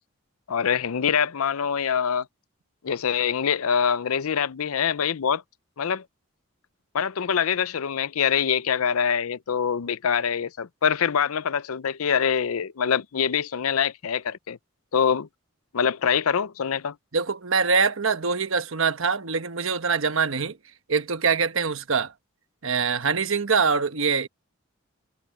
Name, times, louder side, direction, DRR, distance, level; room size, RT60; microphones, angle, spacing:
voice 1, 0.5-2.3 2.8-5.4 5.8-6.0 6.9-14.6 14.9-15.3 15.7-16.9, left 7 dB, 90° left, 0.5 m, -24 dB
voice 2, 17.1-20.6 20.9-22.1 22.6-24.3, right 5 dB, 70° right, 1.1 m, -24 dB
head